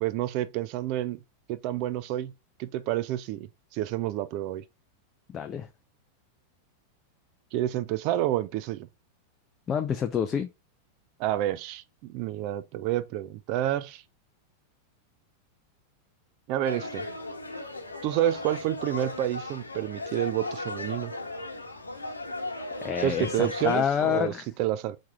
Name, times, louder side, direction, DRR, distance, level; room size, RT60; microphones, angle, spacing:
voice 1, 0.0-1.2 1.5-2.3 2.6-4.6 7.5-8.9 11.2-14.0 16.5-17.1 18.0-21.1 23.0-25.0, right 13 dB, 45° right, 0.5 m, -29 dB
voice 2, 5.3-5.7 9.7-10.5 22.8-24.5, left 8 dB, 25° left, 0.5 m, -27 dB
sound 1, 16.6-23.8, left 2 dB, 80° left, 1.0 m, -36 dB
4.6 x 4.4 x 2.4 m
figure-of-eight pair, 90°, 0 cm